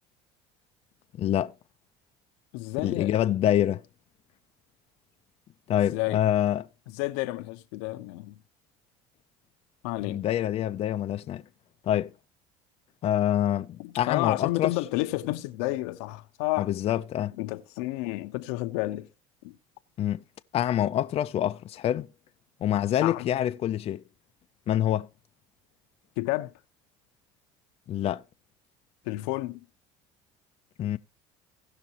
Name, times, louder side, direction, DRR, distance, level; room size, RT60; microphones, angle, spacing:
voice 1, 1.2-1.5 2.8-3.8 5.7-6.7 10.1-11.4 11.8-12.1 13.0-14.7 16.6-17.4 20.0-20.2 20.5-22.1 22.6-24.0 24.7-25.1 27.9-28.2 30.8-31.0, left 11 dB, 45° left, 0.6 m, -26 dB
voice 2, 2.5-3.2 5.9-6.2 6.9-8.4 9.8-10.2 13.8-16.7 17.4-19.1 19.4-19.6 23.0-23.4 26.2-26.5 29.0-29.7, left 19 dB, 80° left, 0.9 m, -31 dB
17.0 x 6.0 x 2.9 m
supercardioid pair, 95°, 14 cm